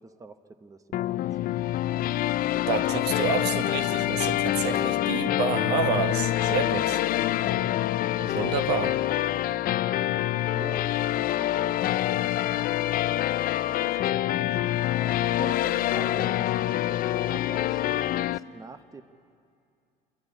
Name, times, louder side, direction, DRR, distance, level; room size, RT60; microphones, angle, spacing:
voice 1, 0.0-1.5 4.6-5.2 7.5-7.8 8.6-9.0 10.5-11.7 13.8-19.0, right 3 dB, 20° right, 10 dB, 0.8 m, -44 dB
sound 1, 0.9-18.4, left 14 dB, 60° left, 0.4 m, -26 dB
voice 2, 2.7-7.0 8.2-9.0, right 6 dB, 90° right, 8 dB, 1.0 m, -29 dB
28.0 x 10.5 x 9.8 m, 2.4 s
cardioid pair, 110°, 17 cm